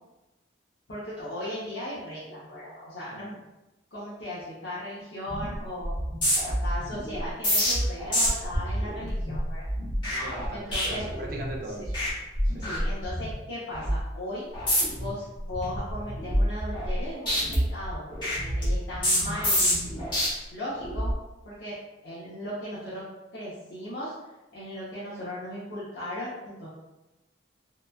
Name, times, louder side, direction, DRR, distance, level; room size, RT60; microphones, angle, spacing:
voice 1, 0.9-3.3 3.9-5.9 6.5-9.6 10.5-11.1 12.5-14.5 15.0-18.0 18.4-20.0 20.5-21.2 21.5-21.8 22.0-23.0 23.3-24.1 24.5-26.7, left 1 dB, 60° left, -10 dB, 0.6 m, -37 dB
voice 2, 3.1-3.4 10.1-12.0 12.4-12.7, right 1 dB, 45° right, -1 dB, 0.5 m, -40 dB
Random Fliter Noise, 5.3-5.5 5.8-11.5 11.8-12.1 12.4-13.3 13.7-14.0 14.5-15.1 15.5-17.0 17.3-20.3 20.8-21.1, equal, 25° left, 0.9 m, -27 dB
2.9 x 2.2 x 2.2 m, 1.0 s
head